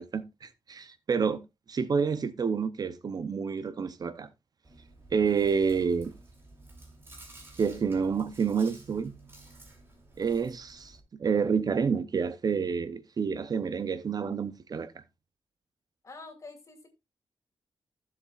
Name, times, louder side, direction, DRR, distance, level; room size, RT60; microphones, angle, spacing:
voice 1, 0.0-1.4 1.7-4.3 5.1-6.1 7.6-9.1 10.2-15.0, right 6 dB, 45° right, 0.6 m, -29 dB
Chewing mastication, 4.6-11.0, right 2 dB, 25° right, 3.0 m, -52 dB
voice 2, 16.0-16.9, left 3 dB, 35° left, 2.6 m, -47 dB
15.0 x 7.1 x 2.4 m
wide cardioid pair, 160°, 9 cm